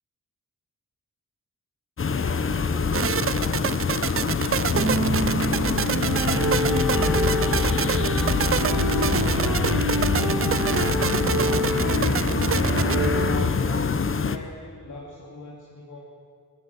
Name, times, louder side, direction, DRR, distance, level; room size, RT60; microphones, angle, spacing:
voice 1, 2.0-7.5 8.0-12.0 12.5-16.0, left 1 dB, 70° left, -4 dB, 3.1 m, -42 dB
sound 1, 2.0-14.4, left 5 dB, 40° left, 0.9 m, -25 dB
sound 2, 2.9-13.1, right 8 dB, 45° right, 0.4 m, -27 dB
sound 3, 4.7-13.5, right 1 dB, 65° right, 2.2 m, -26 dB
21.5 x 18.0 x 7.9 m, 2.2 s
wide cardioid pair, 160°, 32 cm